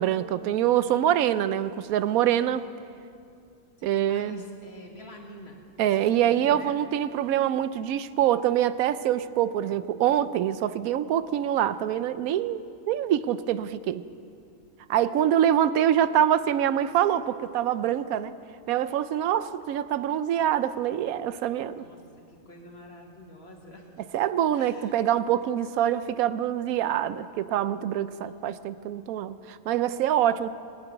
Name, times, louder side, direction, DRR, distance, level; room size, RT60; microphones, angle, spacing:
voice 1, 0.0-2.6 3.8-4.4 5.8-14.0 14.9-18.3 18.7-21.8 24.1-30.5, right 11 dB, 85° right, 14 dB, 1.0 m, -25 dB
voice 2, 0.9-1.4 3.8-6.8 21.8-22.0 22.3-23.9 24.6-25.0 28.2-28.5, left 1 dB, 50° left, 0 dB, 2.1 m, -46 dB
19.5 x 7.8 x 9.3 m, 2.5 s
omnidirectional pair, 1.4 m